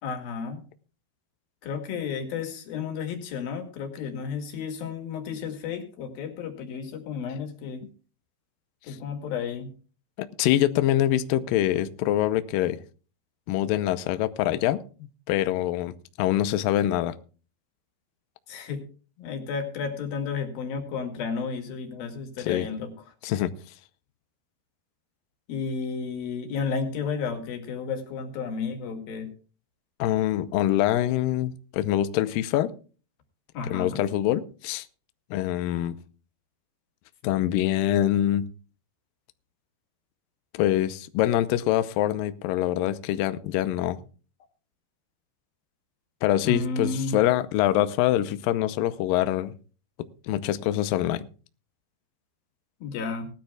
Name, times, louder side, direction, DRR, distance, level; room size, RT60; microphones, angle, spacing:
voice 1, 0.0-0.6 1.6-7.8 8.8-9.7 18.5-18.8 19.2-22.9 25.5-29.3 33.5-34.1 46.4-47.2 52.8-53.3, left 5 dB, 60° left, 4 dB, 3.8 m, -32 dB
voice 2, 10.2-12.8 13.5-14.8 15.3-17.1 22.4-22.7 23.2-23.5 30.0-32.7 33.7-34.9 35.3-36.0 37.2-38.5 40.5-44.0 46.2-49.5 50.2-51.3, left 13 dB, 90° left, 12 dB, 2.0 m, -24 dB
20.0 x 13.5 x 2.3 m, 0.37 s
omnidirectional pair, 5.0 m